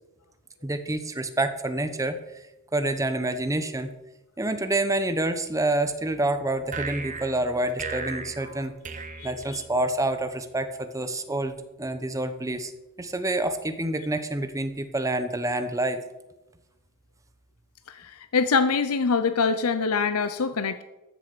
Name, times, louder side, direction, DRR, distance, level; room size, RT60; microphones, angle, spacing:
voice 1, 0.6-2.2 2.7-3.9 4.4-8.7 9.2-12.7 13.0-16.0, right 2 dB, 15° right, 9 dB, 0.9 m, -27 dB
sound 1, 6.7-10.1, right 4 dB, 35° right, 0.9 m, -37 dB
voice 2, 9.2-9.6 17.9-20.8, left 5 dB, 85° left, 11 dB, 0.7 m, -25 dB
13.5 x 7.3 x 6.8 m, 1.0 s
head